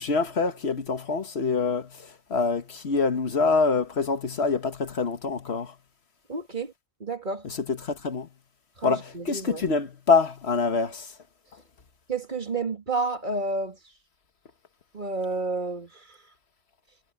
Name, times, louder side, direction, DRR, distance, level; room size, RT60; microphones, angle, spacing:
voice 1, 0.0-1.9 2.3-5.7 7.4-8.3 8.8-11.1, left 4 dB, 70° left, 1.6 m, -25 dB
voice 2, 6.3-6.7 7.0-7.5 8.8-9.6 12.1-13.8 14.9-16.2, right 3 dB, 45° right, 2.5 m, -30 dB
omnidirectional pair, 1.1 m